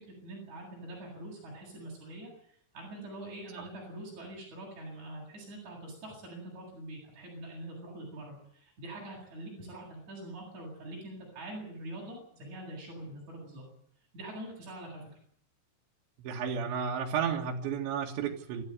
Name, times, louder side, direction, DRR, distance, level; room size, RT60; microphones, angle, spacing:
voice 1, 0.0-13.6 14.1-15.0, right 1 dB, 40° right, -2 dB, 9.2 m, -44 dB
voice 2, 16.2-18.6, right 7 dB, 75° right, -1 dB, 4.2 m, -32 dB
28.5 x 13.5 x 9.5 m, 0.65 s
omnidirectional pair, 5.3 m